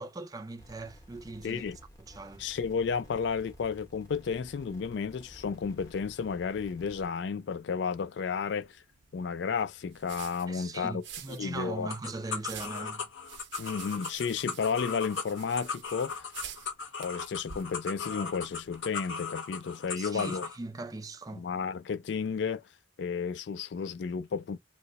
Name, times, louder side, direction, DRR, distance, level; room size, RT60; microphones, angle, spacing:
voice 1, 0.0-1.6 2.0-2.5 10.5-13.1 19.9-21.5, right 3 dB, 20° right, 0.4 m, -40 dB
sound 1, 0.6-7.1, equal, 15° left, 0.7 m, -53 dB
voice 2, 1.4-1.8 2.4-8.8 9.1-11.0 11.4-11.9 13.6-16.3 17.0-20.5 21.3-22.6 23.0-24.6, left 6 dB, 70° left, 0.3 m, -32 dB
sound 2, 6.6-18.8, right 8 dB, 70° right, 0.7 m, -50 dB
sound 3, 11.9-20.6, left 5 dB, 85° left, 0.8 m, -38 dB
2.8 x 2.2 x 3.8 m
head